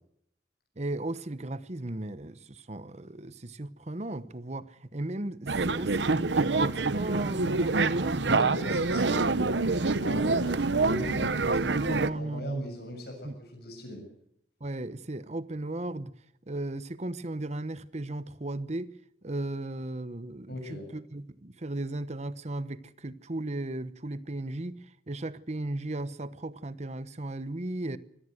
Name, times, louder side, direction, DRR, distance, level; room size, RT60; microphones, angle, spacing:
voice 1, 0.8-8.8 11.9-12.6 13.2-13.3 14.6-16.1 16.5-18.9 19.2-28.0, right 2 dB, 40° right, 1.1 m, -36 dB
sound 1, 5.5-12.1, right 3 dB, 85° right, 1.0 m, -26 dB
voice 2, 8.2-14.0 20.5-20.9, equal, 60° left, 7.1 m, -40 dB
24.0 x 17.5 x 7.9 m
head